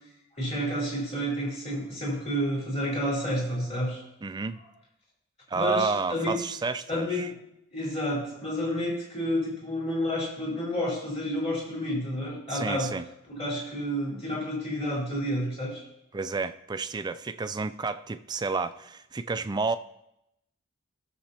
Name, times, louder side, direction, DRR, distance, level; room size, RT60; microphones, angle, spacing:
voice 1, 0.4-4.0 5.5-6.3 6.9-7.3 7.7-12.9 13.3-15.8, equal, 30° left, -5 dB, 4.1 m, -30 dB
voice 2, 4.2-4.6 5.5-7.3 12.5-13.0 16.1-19.8, right 4 dB, 20° right, 12 dB, 0.3 m, -30 dB
18.0 x 6.9 x 2.9 m, 0.84 s
head